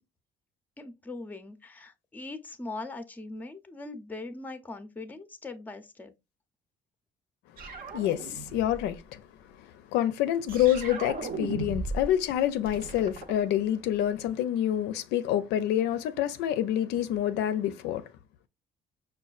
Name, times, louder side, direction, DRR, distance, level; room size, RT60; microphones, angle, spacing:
voice 1, 0.8-6.1, left 2 dB, 10° left, 0.5 m, -41 dB
sound 1, 7.6-8.9 10.5-12.2 12.4-14.0, right 3 dB, 55° right, 0.7 m, -37 dB
voice 2, 7.9-9.2 9.6-18.0, left 11 dB, 85° left, 0.4 m, -27 dB
5.2 x 2.3 x 2.3 m
cardioid pair, 110°, 17 cm